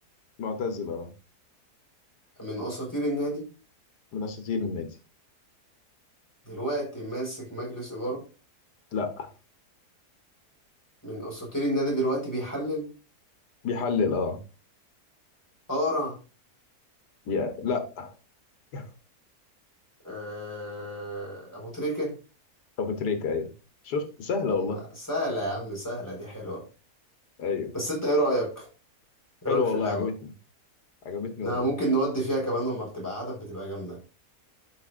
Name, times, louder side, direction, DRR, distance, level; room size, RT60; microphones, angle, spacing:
voice 1, 0.4-1.1 4.1-4.9 8.9-9.3 13.6-14.4 17.3-18.1 18.7-18.9 22.8-23.5 23.8-24.8 27.4-27.7 29.5-30.3 31.0-31.7, left 5 dB, 90° left, 6 dB, 1.8 m, -29 dB
voice 2, 2.4-3.4 6.5-8.2 11.0-12.9 15.7-16.2 20.0-22.1 24.6-26.6 27.7-28.7 29.4-30.1 31.4-34.0, right 1 dB, 10° left, -2 dB, 4.5 m, -30 dB
13.0 x 5.4 x 2.5 m, 0.32 s
omnidirectional pair, 1.7 m